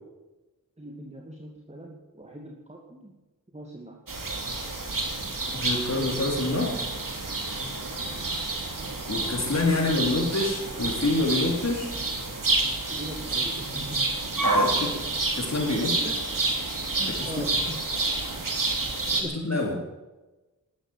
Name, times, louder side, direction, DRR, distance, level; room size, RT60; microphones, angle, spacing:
voice 1, 0.8-3.1 3.5-4.0 8.0-8.7 12.9-14.0 16.0-16.2 17.0-17.8 19.0-19.8, right 1 dB, 20° right, -1 dB, 2.5 m, -41 dB
sound 1, 4.1-19.2, right 2 dB, 65° right, 3.1 m, -29 dB
voice 2, 5.5-6.8 9.1-11.9 14.4-15.0 15.3-16.0 19.1-19.8, left 2 dB, 50° left, -1 dB, 4.0 m, -27 dB
13.0 x 12.0 x 9.3 m, 1.1 s
wide cardioid pair, 55°, 34 cm